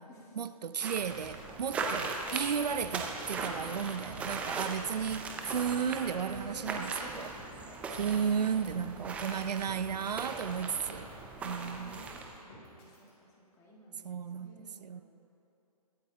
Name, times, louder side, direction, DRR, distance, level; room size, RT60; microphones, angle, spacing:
voice 1, 0.4-7.3 7.9-11.1 11.4-12.0 14.0-15.0, right 7 dB, 85° right, 13 dB, 0.5 m, -34 dB
sound 1, 0.8-12.4, right 4 dB, 5° right, 0.5 m, -39 dB
sound 2, 1.1-4.4 4.6-11.2 11.5-13.1, left 1 dB, 35° left, 2.9 m, -54 dB
voice 2, 3.3-4.7 6.2-8.6 11.4-12.1 12.4-15.0, left 1 dB, 15° left, -2 dB, 1.6 m, -52 dB
22.5 x 8.5 x 2.8 m, 2.9 s
hypercardioid pair, 150°, 20 cm